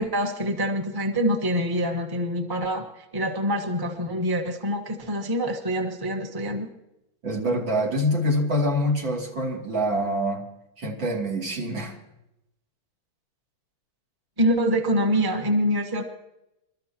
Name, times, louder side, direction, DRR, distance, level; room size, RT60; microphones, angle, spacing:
voice 1, 0.0-2.9 3.1-6.7 14.4-16.0, equal, 15° right, 3 dB, 1.2 m, -25 dB
voice 2, 7.2-10.4 10.8-12.0, equal, 65° right, -2 dB, 3.6 m, -25 dB
28.5 x 13.5 x 2.9 m, 0.87 s
omnidirectional pair, 2.2 m